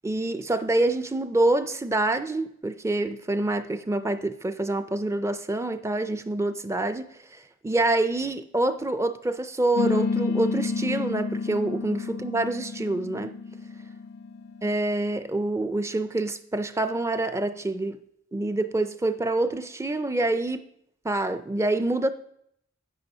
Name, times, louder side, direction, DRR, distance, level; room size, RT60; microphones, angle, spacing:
voice 1, 0.0-7.0 7.6-13.3 14.6-18.0 18.3-20.6 21.0-22.1, right 2 dB, 15° right, 0.4 m, -26 dB
sound 1, 9.8-14.7, left 4 dB, 55° left, 0.3 m, -30 dB
9.0 x 8.4 x 5.5 m
head